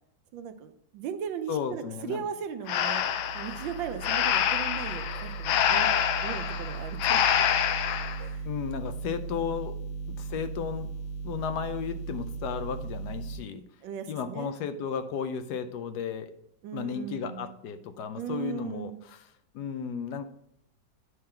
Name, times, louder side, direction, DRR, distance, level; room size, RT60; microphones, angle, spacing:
voice 1, 0.3-3.0 3.3-5.9 6.2-7.2 8.2-8.5 13.8-14.5 16.6-17.6 18.2-19.0, right 8 dB, 75° right, 9 dB, 1.4 m, -37 dB
voice 2, 1.5-2.2 8.4-9.7 10.1-10.9 11.2-13.7 14.1-16.3 16.7-19.3 19.5-20.3, left 7 dB, 70° left, 9 dB, 1.0 m, -34 dB
sound 1, 2.6-13.4, right 5 dB, 55° left, 1.3 m, -38 dB
Breathing, 2.7-8.2, left 9 dB, 85° left, 1.4 m, -26 dB
9.7 x 3.8 x 4.4 m, 0.73 s
omnidirectional pair, 2.1 m